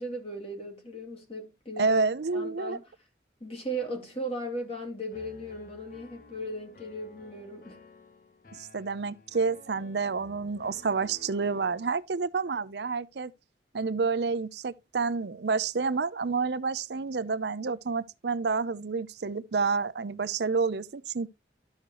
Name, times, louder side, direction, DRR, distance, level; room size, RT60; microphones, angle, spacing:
voice 1, 0.0-2.0 2.3-2.9 3.4-7.8, right 1 dB, 30° left, 2.3 m, -37 dB
voice 2, 1.8-2.8 8.5-13.3 13.7-21.3, right 4 dB, 70° right, 0.6 m, -29 dB
Piano, 5.1-12.0, left 2 dB, 50° left, 1.0 m, -53 dB
12.5 x 6.5 x 3.0 m
head